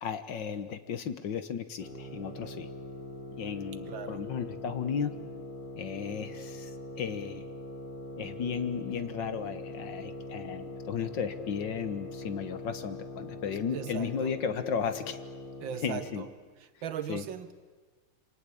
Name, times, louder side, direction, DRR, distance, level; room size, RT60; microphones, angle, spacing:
voice 1, 0.0-2.7 3.4-5.1 5.8-6.7 7.0-7.4 8.2-15.2 15.8-16.3 17.1-17.2, left 7 dB, 60° left, 1.7 m, -34 dB
sound 1, 1.8-16.3, left 2 dB, 80° left, 5.4 m, -42 dB
voice 2, 3.9-4.3 13.7-14.3 15.6-16.3 16.6-17.5, right 8 dB, 65° right, 1.7 m, -38 dB
27.5 x 24.5 x 8.5 m
omnidirectional pair, 2.4 m